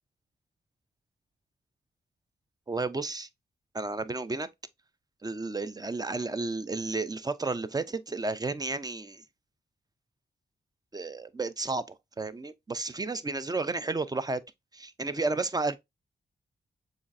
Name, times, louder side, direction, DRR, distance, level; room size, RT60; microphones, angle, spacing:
voice 1, 2.7-3.3 3.7-4.5 5.2-9.2 10.9-11.8 12.2-14.4 14.7-15.8, right 3 dB, 20° right, 0.5 m, -32 dB
7.0 x 2.6 x 2.5 m
cardioid pair, 60°, 18 cm